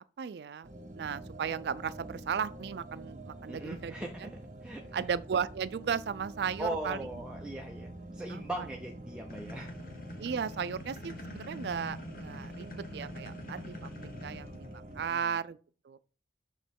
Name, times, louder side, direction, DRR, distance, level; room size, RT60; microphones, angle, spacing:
voice 1, 0.2-0.7 1.0-4.3 4.9-7.0 8.3-8.4 10.2-13.7 14.2-14.7 15.0-15.6 15.9-16.0, right 7 dB, 70° right, 0.3 m, -35 dB
sound 1, 0.6-15.1, right 1 dB, 45° right, 0.7 m, -47 dB
voice 2, 3.5-4.3 4.6-5.1 6.6-9.7 15.1-15.3, right 1 dB, 5° right, 0.5 m, -39 dB
sound 2, 9.3-14.9, left 1 dB, 50° left, 0.9 m, -45 dB
6.4 x 3.0 x 5.3 m
head